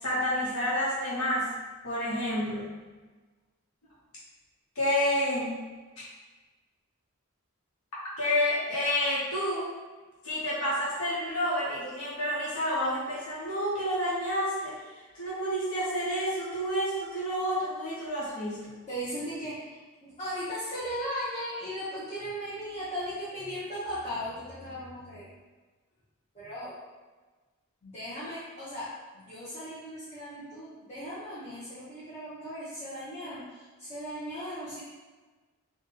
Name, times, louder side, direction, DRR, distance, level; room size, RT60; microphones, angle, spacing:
voice 1, 0.0-1.5 1.8-2.7 4.7-5.6 6.0-6.1 8.2-9.7 10.2-14.8 15.1-18.7, equal, 85° left, -8 dB, 1.1 m, -29 dB
voice 2, 18.9-25.3 26.3-26.8 27.8-28.9 29.1-34.8, equal, 30° left, -12 dB, 1.0 m, -37 dB
3.4 x 2.5 x 4.1 m, 1.3 s
head